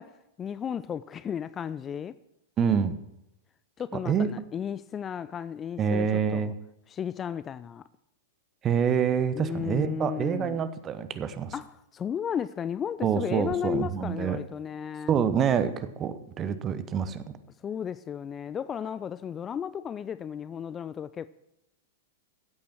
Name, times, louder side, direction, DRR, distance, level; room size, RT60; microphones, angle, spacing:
voice 1, 0.0-2.2 3.8-6.5 6.9-7.8 9.3-10.6 11.5-15.2 17.6-21.3, left 8 dB, 20° left, 0.4 m, -34 dB
voice 2, 2.6-3.0 4.0-4.3 5.8-6.5 8.6-11.5 13.0-14.4 15.1-17.2, right 7 dB, 25° right, 1.0 m, -26 dB
15.5 x 8.5 x 5.9 m
figure-of-eight pair, 100°, 0 cm